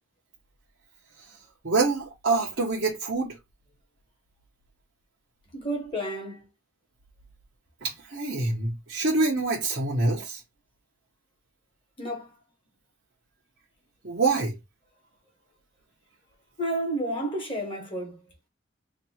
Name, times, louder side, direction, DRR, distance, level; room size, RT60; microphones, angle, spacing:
voice 1, 1.6-3.4 7.8-10.4 14.0-14.6, right 3 dB, 55° right, 0.9 m, -26 dB
voice 2, 5.5-6.4 12.0-12.3 16.6-18.2, right 1 dB, 25° left, 1.3 m, -31 dB
3.0 x 2.6 x 4.1 m
head